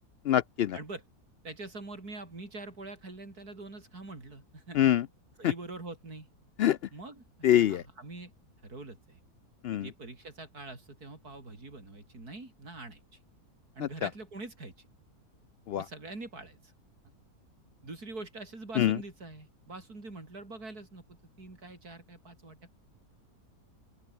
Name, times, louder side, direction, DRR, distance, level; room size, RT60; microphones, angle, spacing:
voice 1, 0.3-0.8 4.8-5.0 6.6-6.8 7.4-7.8 9.6-9.9 13.8-13.9 15.7-15.8 18.8-19.0, left 11 dB, 85° left, 0.5 m, -24 dB
voice 2, 1.4-4.8 5.4-6.3 6.9-8.3 8.6-9.2 9.7-13.0 13.7-14.9 15.8-16.7 17.8-22.7, right 2 dB, 80° right, 5.5 m, -44 dB
open air
omnidirectional pair, 1.6 m